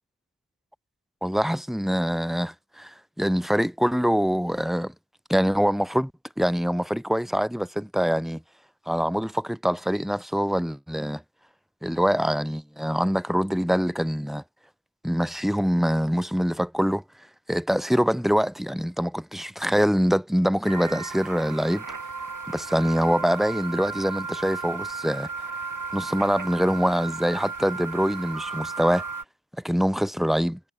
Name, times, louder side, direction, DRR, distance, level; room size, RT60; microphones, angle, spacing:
voice 1, 1.2-4.9 5.3-6.1 6.4-8.4 8.9-11.2 11.8-14.4 15.0-17.0 17.5-21.9 22.5-25.3 25.9-29.0 29.6-30.6, equal, ahead, 5.1 m, -24 dB
sound 1, 20.6-29.2, right 4 dB, 55° right, 4.4 m, -34 dB
cardioid pair, 60°, 38 cm